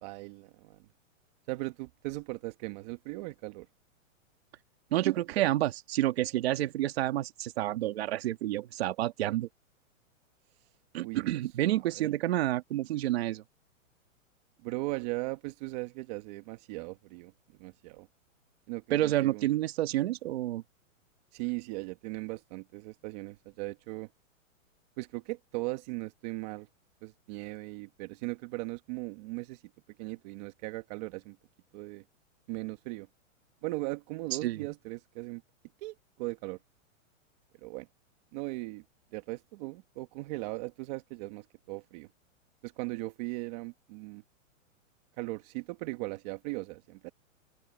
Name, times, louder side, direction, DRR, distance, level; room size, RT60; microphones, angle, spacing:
voice 1, 0.0-0.8 1.5-3.7 11.0-11.3 11.6-12.1 14.6-17.3 17.6-18.1 18.7-19.5 21.3-24.1 25.0-26.7 27.0-29.6 30.0-31.4 31.7-32.0 32.5-33.1 33.6-35.4 35.8-36.6 37.6-37.9 38.3-38.8 39.1-42.1 42.6-44.2 45.2-47.1, right 22 dB, 30° right, 1.4 m, -38 dB
voice 2, 4.9-9.5 10.9-13.4 18.9-20.6 34.4-34.7, right 15 dB, 50° right, 1.9 m, -29 dB
open air
hypercardioid pair, 160°, 40 cm